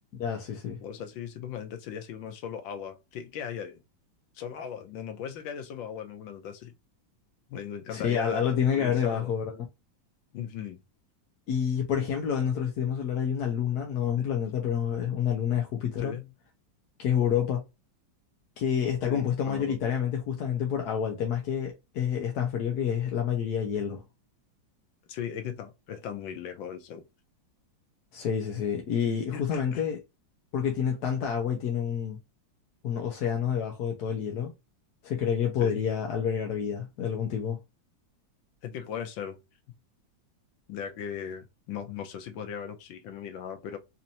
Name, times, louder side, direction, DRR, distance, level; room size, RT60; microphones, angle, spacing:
voice 1, 0.2-0.8 7.9-9.6 11.5-16.1 17.0-17.6 18.6-24.0 28.1-30.0 30.5-32.2 32.8-34.5 35.0-37.6, left 8 dB, 65° left, 1.1 m, -28 dB
voice 2, 0.8-3.8 4.3-6.7 7.5-9.3 10.3-10.8 14.2-14.3 16.0-16.3 19.0-19.8 25.1-27.0 29.3-29.8 35.6-35.8 38.6-39.4 40.7-43.8, left 8 dB, 80° left, 1.5 m, -38 dB
4.3 x 2.6 x 2.7 m
omnidirectional pair, 2.1 m